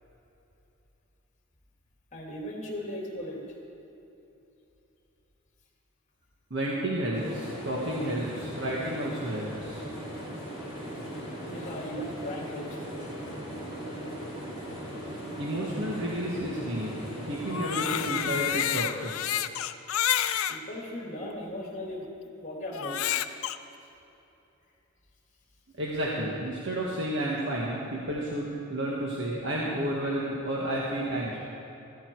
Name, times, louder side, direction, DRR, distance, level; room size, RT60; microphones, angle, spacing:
voice 1, 2.1-3.4 8.9-9.1 11.5-13.0 20.5-22.1 22.4-23.4, left 1 dB, 35° left, -2 dB, 2.7 m, -38 dB
voice 2, 6.5-9.8 15.3-19.1 25.8-31.4, right 1 dB, 55° right, -4 dB, 1.6 m, -31 dB
sound 1, 7.1-18.2, equal, 20° right, 3.7 m, -39 dB
Crying sobbing, 17.4-20.6 21.3-21.4 22.7-23.6, left 10 dB, 80° left, 0.5 m, -29 dB
15.5 x 14.0 x 4.7 m, 2.9 s
head